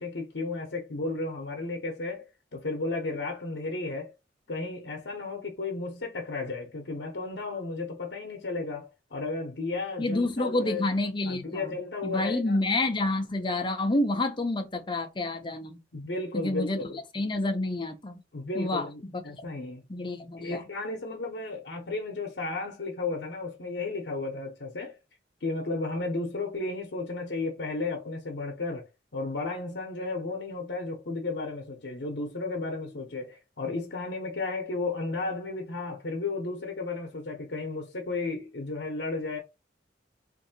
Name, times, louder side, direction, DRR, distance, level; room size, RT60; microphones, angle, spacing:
voice 1, 0.0-2.3 2.5-4.1 4.5-10.9 11.2-12.6 15.9-17.0 18.3-19.8 20.4-25.0 25.4-39.4, left 3 dB, 75° left, 0.8 m, -33 dB
voice 2, 10.0-11.7 12.0-15.8 16.3-16.8 17.1-18.2 18.6-19.1 19.9-20.7, left 2 dB, 25° left, 0.6 m, -28 dB
3.6 x 2.6 x 2.7 m
head